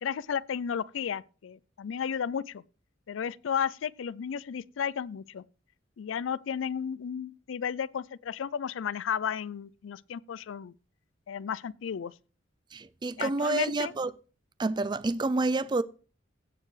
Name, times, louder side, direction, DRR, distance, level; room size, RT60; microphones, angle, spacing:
voice 1, 0.0-2.6 3.1-5.4 6.0-10.7 11.3-12.1 13.2-13.9, left 7 dB, 90° left, 0.4 m, -33 dB
voice 2, 12.7-14.1 14.6-15.8, right 2 dB, 25° right, 0.4 m, -28 dB
16.0 x 6.7 x 3.2 m
head